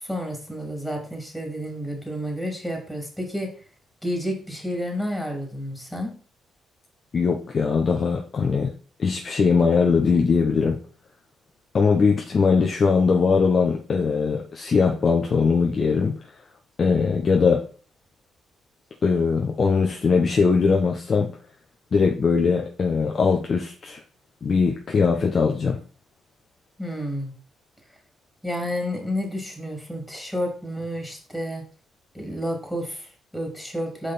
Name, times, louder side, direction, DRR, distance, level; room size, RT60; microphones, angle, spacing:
voice 1, 0.0-3.5 4.0-6.1 26.8-27.3 28.4-31.6 32.1-34.1, equal, 5° left, 2 dB, 3.0 m, -30 dB
voice 2, 7.1-8.7 9.0-10.8 11.7-16.2 16.8-17.6 19.0-21.3 21.9-24.0 24.4-25.8, left 5 dB, 45° left, 1 dB, 1.0 m, -21 dB
5.2 x 5.2 x 4.4 m, 0.40 s
hypercardioid pair, 50°, 0 cm